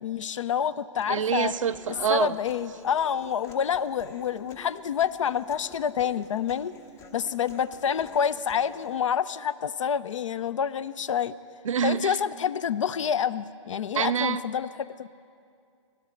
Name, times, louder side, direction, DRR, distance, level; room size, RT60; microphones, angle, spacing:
voice 1, 0.0-1.5 2.1-6.7 7.1-11.3 11.8-15.1, left 8 dB, 75° left, 18 dB, 0.4 m, -28 dB
Human voice, 1.0-9.0, left 2 dB, 15° left, 0.6 m, -50 dB
voice 2, 1.1-2.4 11.6-12.2 13.9-14.4, right 7 dB, 80° right, 13 dB, 0.5 m, -26 dB
16.5 x 12.0 x 4.4 m, 2.4 s
hypercardioid pair, 135°, 16 cm